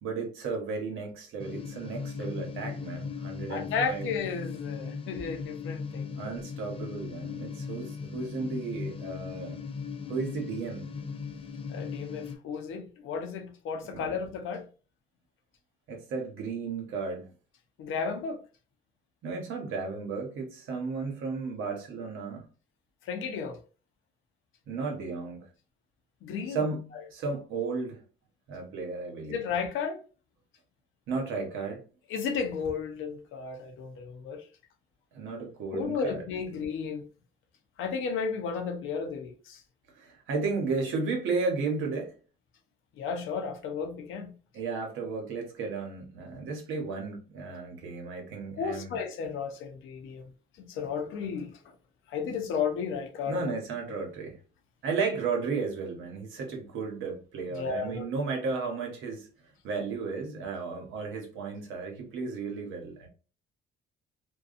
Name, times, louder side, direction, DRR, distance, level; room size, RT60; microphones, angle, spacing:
voice 1, 0.0-4.1 6.2-9.6 10.1-10.9 13.8-14.2 15.9-17.3 19.2-22.4 24.7-25.5 26.5-28.0 28.5-29.4 31.1-31.8 35.1-36.2 40.0-42.1 44.5-49.0 53.3-54.4 54.8-59.3 59.6-63.1, right 4 dB, 85° right, 1.0 m, -34 dB
sound 1, 1.4-12.4, left 5 dB, 30° left, 0.4 m, -38 dB
voice 2, 3.5-6.3 11.7-14.7 17.8-18.4 23.1-23.6 26.2-26.7 29.3-30.0 32.1-34.4 35.7-37.0 37.8-39.6 43.0-44.3 48.6-50.2 50.6-51.6 52.1-53.5 57.5-58.1, left 5 dB, 85° left, 0.7 m, -33 dB
2.6 x 2.2 x 2.5 m
cardioid pair, 90°, 20 cm